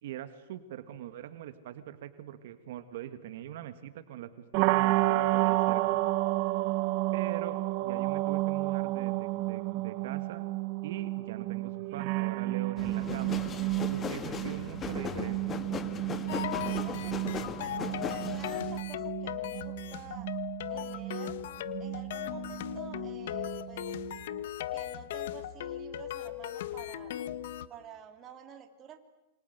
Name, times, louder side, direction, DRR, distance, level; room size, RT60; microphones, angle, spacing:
voice 1, 0.0-6.0 7.1-10.5 10.8-15.6, right 11 dB, 65° right, 10 dB, 1.7 m, -43 dB
sound 1, 4.5-24.4, right 19 dB, 45° right, 0.9 m, -32 dB
sound 2, 12.8-18.8, left 6 dB, 20° left, 1.5 m, -38 dB
voice 2, 14.8-15.1 16.3-20.3 20.7-21.4 21.8-23.9 24.4-27.1 27.7-29.0, right 8 dB, 25° right, 6 dB, 2.7 m, -50 dB
sound 3, 16.3-27.7, left 12 dB, 65° left, 1.3 m, -38 dB
28.5 x 25.0 x 8.1 m, 1.0 s
supercardioid pair, 155°, 0 cm